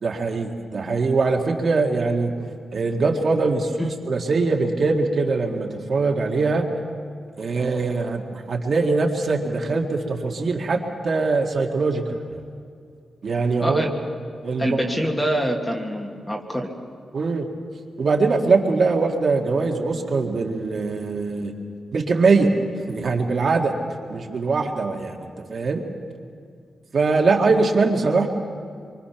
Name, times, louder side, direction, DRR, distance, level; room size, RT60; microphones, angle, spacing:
voice 1, 0.0-2.3 2.7-3.7 4.1-6.6 7.4-8.2 8.5-12.4 13.2-13.8 14.4-14.8 17.1-17.5 18.0-21.5 21.9-22.5 22.9-23.8 24.1-25.2 25.5-25.8 26.9-28.3, right 3 dB, 45° right, 1 dB, 1.9 m, -22 dB
voice 2, 13.6-13.9 14.6-16.7, equal, 10° left, 1 dB, 1.8 m, -25 dB
26.5 x 24.5 x 5.9 m, 2.3 s
wide cardioid pair, 175°, 0 cm